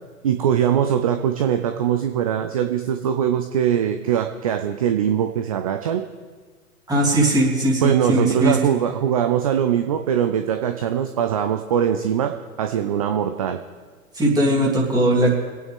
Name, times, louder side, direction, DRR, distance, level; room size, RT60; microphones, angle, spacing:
voice 1, 0.2-6.0 7.8-12.3 12.6-13.6, right 9 dB, 25° right, 7 dB, 0.4 m, -21 dB
voice 2, 6.9-8.6 14.1-15.3, right 1 dB, 10° right, -4 dB, 3.1 m, -19 dB
26.0 x 9.1 x 3.6 m, 1.5 s
figure-of-eight pair, 115°, 44 cm